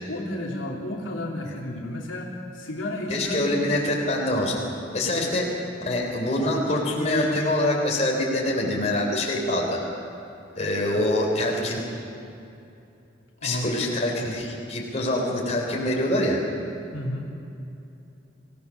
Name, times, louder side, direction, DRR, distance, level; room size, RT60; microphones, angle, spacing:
voice 1, 0.1-3.6 5.1-5.4 13.4-13.8 16.9-17.3, left 1 dB, 85° left, -2 dB, 2.8 m, -32 dB
voice 2, 3.1-4.6 4.9-5.4 5.8-9.8 10.5-11.8 13.4-16.4, left 1 dB, 35° left, -1 dB, 4.0 m, -25 dB
25.0 x 17.0 x 6.6 m, 2.7 s
head